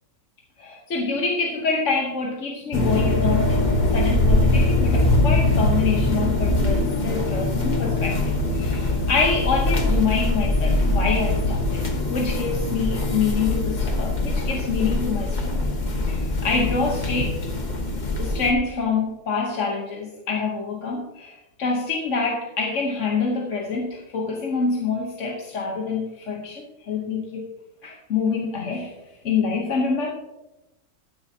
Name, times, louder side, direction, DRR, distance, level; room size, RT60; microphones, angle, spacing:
voice 1, 0.6-3.6 3.9-15.7 16.0-17.4 18.2-27.4 27.8-28.9 29.2-30.1, left 4 dB, 55° left, -1 dB, 1.4 m, -26 dB
sound 1, 2.7-18.5, left 2 dB, 30° left, 1.2 m, -22 dB
13.0 x 10.5 x 2.8 m, 1.0 s
omnidirectional pair, 1.6 m